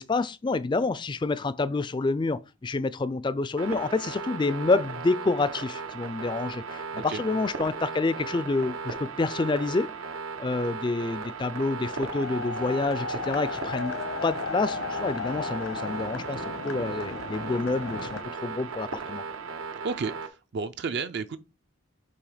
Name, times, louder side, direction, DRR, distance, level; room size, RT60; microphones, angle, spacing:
voice 1, 0.0-9.9 10.4-13.9 14.2-19.2, left 3 dB, 20° left, 0.3 m, -28 dB
sound 1, 3.6-20.3, right 5 dB, 90° right, 0.9 m, -37 dB
sound 2, 11.8-18.2, left 4 dB, 85° left, 1.1 m, -35 dB
voice 2, 20.5-21.4, right 4 dB, 55° right, 0.4 m, -31 dB
6.9 x 2.9 x 4.9 m
head